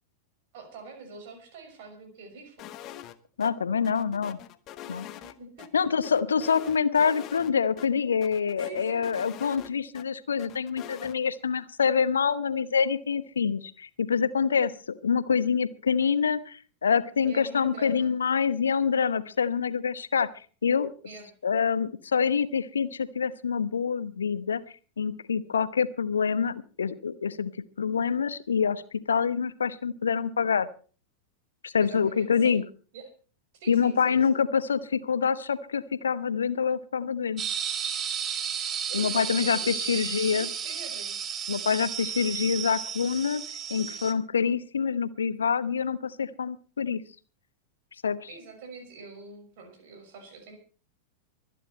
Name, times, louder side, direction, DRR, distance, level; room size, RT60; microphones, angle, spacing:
voice 1, 0.5-2.8 4.8-5.7 8.6-9.1 17.2-18.1 21.0-21.3 31.8-32.6 32.9-33.1 33.5-34.4 38.9-41.2 48.3-50.6, right 3 dB, 50° right, 5 dB, 6.1 m, -45 dB
sound 1, 2.6-3.1 3.4-3.5 3.8-5.7 6.0-7.5 7.8-7.9 8.2-10.0 10.4-11.2, left 12 dB, 35° left, 1.2 m, -43 dB
voice 2, 3.4-4.4 4.9-5.1 5.7-14.7 15.0-20.3 20.6-20.9 21.4-24.6 25.0-27.5 27.8-30.7 31.6-32.6 33.7-37.4 38.9-40.5 41.5-43.4 43.7-47.0 48.0-48.2, left 6 dB, 70° left, 15 dB, 1.0 m, -26 dB
sound 2, 37.4-44.1, right 8 dB, 25° right, 1.6 m, -33 dB
24.0 x 9.9 x 4.4 m, 0.39 s
figure-of-eight pair, 90°, 0 cm